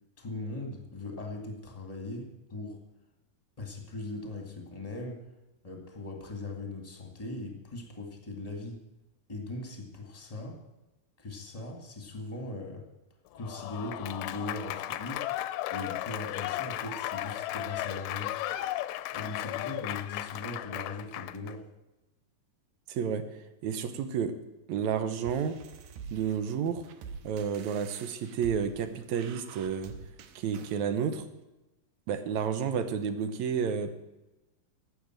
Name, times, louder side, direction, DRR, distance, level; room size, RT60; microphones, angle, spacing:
voice 1, 0.2-2.8 3.6-5.2 5.6-8.8 9.3-10.6 11.2-12.9 13.3-15.2 15.7-18.4 19.1-21.7, left 2 dB, 15° left, 2 dB, 1.4 m, -39 dB
Applause / Crowd, 13.4-21.5, left 14 dB, 80° left, 2.1 m, -35 dB
voice 2, 22.9-24.4 24.7-25.6 26.1-26.9 27.2-30.0 30.4-31.3 32.1-34.0, right 7 dB, 70° right, 10 dB, 2.0 m, -31 dB
sound 1, 25.3-30.8, right 5 dB, 85° right, 2.6 m, -47 dB
12.0 x 7.9 x 8.9 m, 1.0 s
omnidirectional pair, 3.9 m